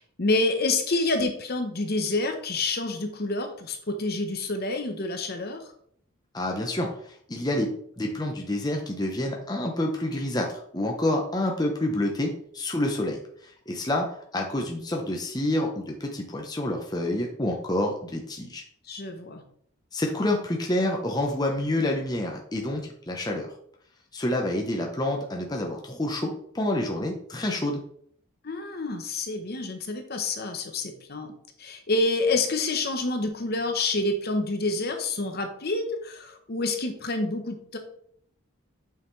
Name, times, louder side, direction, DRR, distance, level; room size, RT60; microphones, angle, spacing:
voice 1, 0.0-5.6 18.9-19.4 28.4-31.3 31.6-37.8, left 2 dB, 45° left, 6 dB, 0.9 m, -28 dB
voice 2, 6.3-6.9 7.3-7.7 8.0-18.6 19.9-23.5 24.1-27.8, left 1 dB, 20° left, 1 dB, 0.8 m, -28 dB
7.0 x 5.6 x 3.2 m, 0.64 s
head